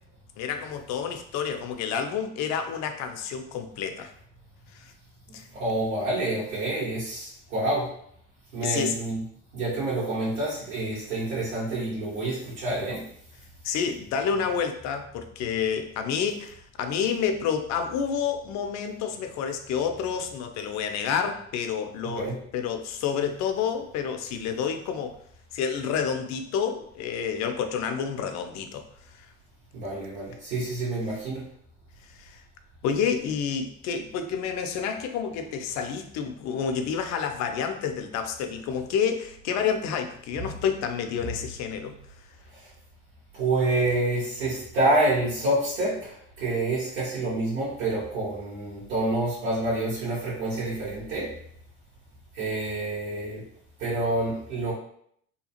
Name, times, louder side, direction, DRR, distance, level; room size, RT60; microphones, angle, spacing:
voice 1, 0.4-4.1 4.7-4.9 5.3-5.4 8.6-9.0 13.6-25.2 25.5-28.9 29.1-29.3 32.1-32.4 32.8-42.0, left 7 dB, 45° left, 6 dB, 0.5 m, -29 dB
voice 2, 5.3-7.9 8.5-9.2 9.5-13.0 22.2-22.4 29.7-31.4 42.5-42.7 43.3-51.3 52.3-53.4 53.8-54.7, right 2 dB, 80° right, -12 dB, 1.3 m, -28 dB
2.8 x 2.3 x 2.8 m, 0.66 s
hypercardioid pair, 65°, 38 cm